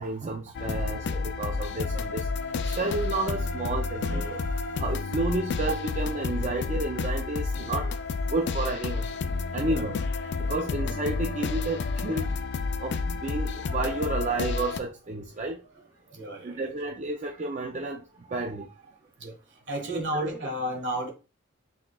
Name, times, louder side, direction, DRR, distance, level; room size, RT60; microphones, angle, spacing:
voice 1, 0.0-4.4 4.8-9.2 9.5-10.0 10.4-12.4 12.8-15.6 16.4-18.9 19.9-20.3, right 2 dB, 35° right, 2 dB, 0.4 m, -31 dB
sound 1, 0.5-14.8, left 4 dB, 50° left, 0.4 m, -30 dB
voice 2, 16.1-16.7 19.2-19.3 19.7-21.1, right 1 dB, 55° right, 2 dB, 1.6 m, -33 dB
5.8 x 3.6 x 2.3 m, 0.32 s
head